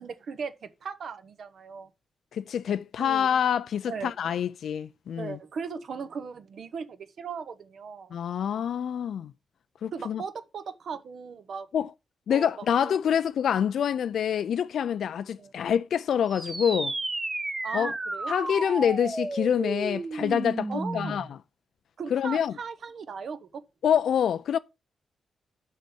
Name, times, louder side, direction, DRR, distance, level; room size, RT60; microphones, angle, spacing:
voice 1, 0.0-1.9 3.0-3.3 3.9-4.1 5.2-8.1 9.9-11.7 12.3-12.5 12.8-12.9 15.4-15.5 17.6-18.3 20.7-21.2 22.0-23.6, right 6 dB, 60° right, 1.0 m, -38 dB
voice 2, 2.3-5.4 8.1-9.3 9.8-10.2 11.7-11.9 12.3-16.9 17.7-17.9 18.3-21.3 22.1-22.5 23.8-24.6, left 8 dB, 75° left, 0.4 m, -26 dB
sound 1, 16.3-21.3, right 2 dB, 20° right, 0.9 m, -32 dB
6.3 x 5.5 x 7.0 m
wide cardioid pair, 145°, 0 cm